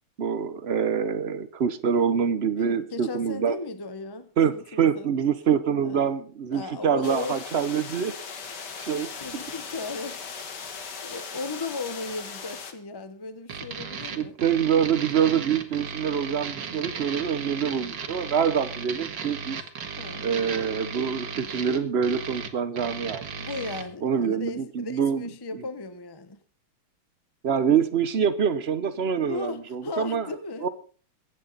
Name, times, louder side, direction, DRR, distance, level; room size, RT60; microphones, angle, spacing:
voice 1, 0.2-3.6 4.4-8.1 8.8-9.1 14.2-19.6 20.2-23.2 24.0-25.3 25.5-25.6 27.4-30.3 30.6-30.7, right 7 dB, 80° right, 0.5 m, -25 dB
voice 2, 2.6-5.1 5.8-6.2 6.5-7.4 9.2-10.2 11.0-14.4 20.0-20.3 23.4-26.4 29.3-30.7, left 3 dB, 20° left, 0.6 m, -36 dB
sound 1, 7.0-12.7, left 5 dB, 50° left, 2.1 m, -38 dB
sound 2, 13.5-23.8, right 6 dB, 55° right, 2.0 m, -36 dB
24.0 x 9.0 x 4.0 m
omnidirectional pair, 2.4 m